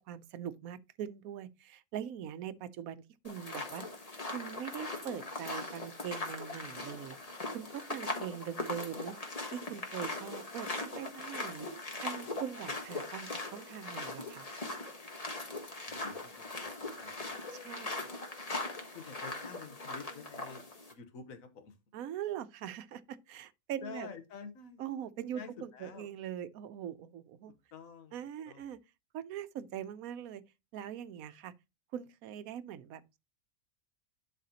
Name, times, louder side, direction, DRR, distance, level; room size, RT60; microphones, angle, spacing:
voice 1, 0.1-3.9 4.3-7.2 7.5-9.1 9.5-11.7 12.0-14.5 17.5-18.1 21.9-24.1 24.8-27.5 28.1-28.8 29.1-30.4 30.7-31.5 31.9-33.2, right 9 dB, 85° right, 1.1 m, -42 dB
sound 1, 3.2-20.9, left 2 dB, 30° left, 1.2 m, -40 dB
voice 2, 15.9-17.3 18.9-20.6 20.9-21.7 23.8-24.8 25.3-26.1 27.7-28.2 28.5-28.6, left 6 dB, 75° left, 1.4 m, -49 dB
11.5 x 4.0 x 2.8 m
omnidirectional pair, 1.4 m